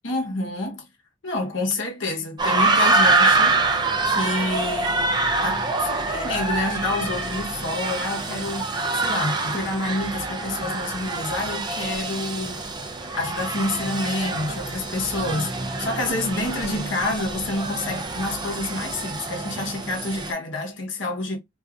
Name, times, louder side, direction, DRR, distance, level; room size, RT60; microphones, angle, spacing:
voice 1, 0.0-0.9 1.2-3.7 4.0-12.6 13.0-15.5 15.8-21.4, left 2 dB, 70° left, 1.0 m, -28 dB
sound 1, 2.4-20.3, right 3 dB, 20° right, 0.5 m, -25 dB
2.6 x 2.5 x 3.3 m
head